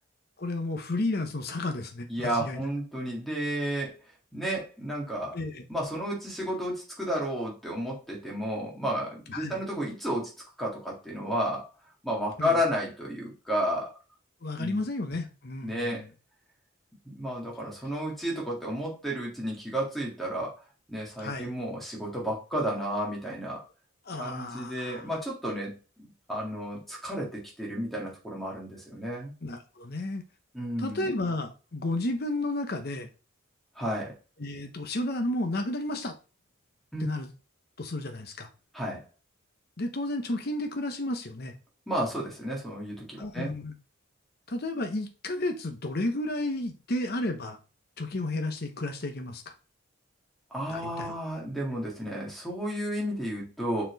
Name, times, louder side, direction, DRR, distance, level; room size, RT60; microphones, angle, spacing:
voice 1, 0.4-2.6 5.3-5.7 9.3-9.6 12.4-12.6 14.4-16.1 21.2-21.5 24.1-25.0 29.4-30.2 30.8-33.1 34.4-36.1 37.0-37.3 37.8-38.5 39.8-41.5 43.2-43.8 44.5-47.6 48.0-49.5 50.7-51.1, left 2 dB, 50° left, 0.8 m, -32 dB
voice 2, 2.1-4.0 4.3-5.3 5.7-10.3 10.6-11.7 12.0-13.9 14.6-14.8 15.6-16.1 17.0-20.6 20.9-23.6 24.2-29.3 30.5-31.1 33.8-34.2 36.9-37.1 38.7-39.0 41.9-43.5 50.5-53.8, equal, ahead, 2.2 m, -32 dB
6.4 x 4.3 x 4.0 m
head